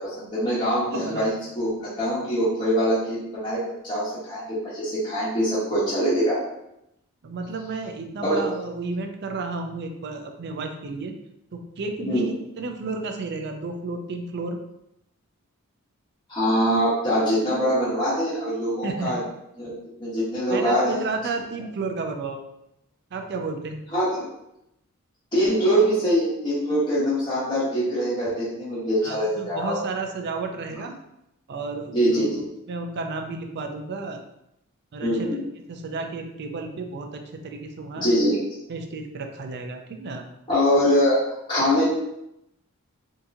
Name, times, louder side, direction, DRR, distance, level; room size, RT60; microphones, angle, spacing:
voice 1, 0.0-6.4 8.2-8.4 12.0-12.3 16.3-19.2 19.6-19.7 20.0-21.0 23.9-24.3 25.3-29.8 31.9-32.3 35.0-35.4 38.0-38.4 40.5-41.2 41.5-41.9, equal, 20° left, -11 dB, 1.2 m, -23 dB
voice 2, 0.9-1.3 7.2-11.1 11.5-14.6 18.8-19.2 20.5-22.4 23.1-23.9 29.0-30.9 31.5-34.2 34.9-35.3 35.7-38.0 38.7-40.2, right 3 dB, 50° right, 4 dB, 0.4 m, -32 dB
3.7 x 2.8 x 2.6 m, 0.83 s
head